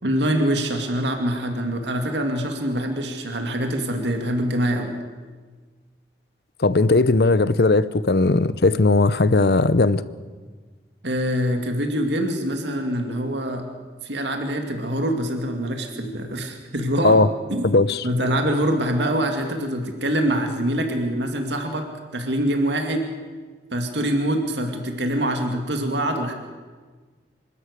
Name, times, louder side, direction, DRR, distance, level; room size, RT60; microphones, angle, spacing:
voice 1, 0.0-5.0 11.0-13.7 14.0-17.2 17.5-17.7 18.0-21.9 22.1-23.1 23.7-26.3, right 1 dB, 85° right, 4 dB, 2.4 m, -24 dB
voice 2, 6.6-10.0 17.0-17.3 17.6-18.1, left 3 dB, 65° left, 16 dB, 0.7 m, -18 dB
26.5 x 12.5 x 8.3 m, 1.4 s
head